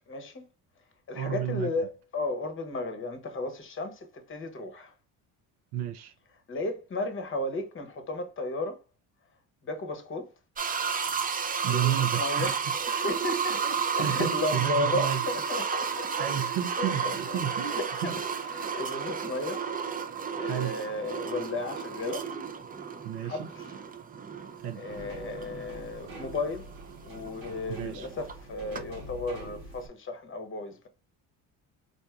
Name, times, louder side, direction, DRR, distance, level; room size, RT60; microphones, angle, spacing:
voice 1, 0.1-0.5 1.1-4.9 6.5-8.8 9.6-10.3 11.7-12.6 12.9-16.2 16.8-18.1 18.5-19.7 19.9-22.3 23.2-23.8 24.7-26.7 27.0-30.9, left 2 dB, 30° left, 0.8 m, -34 dB
voice 2, 1.1-1.7 5.7-6.1 11.6-12.6 13.6-15.2 16.2-18.1 20.5-20.7 23.0-23.5 24.6-24.8 27.8-28.1, right 10 dB, 70° right, 0.6 m, -32 dB
sound 1, 10.6-28.4 28.7-28.8, right 6 dB, 20° right, 0.4 m, -32 dB
sound 2, 24.9-29.9, right 1 dB, 85° right, 1.2 m, -45 dB
4.3 x 2.6 x 2.3 m
supercardioid pair, 75°, 40 cm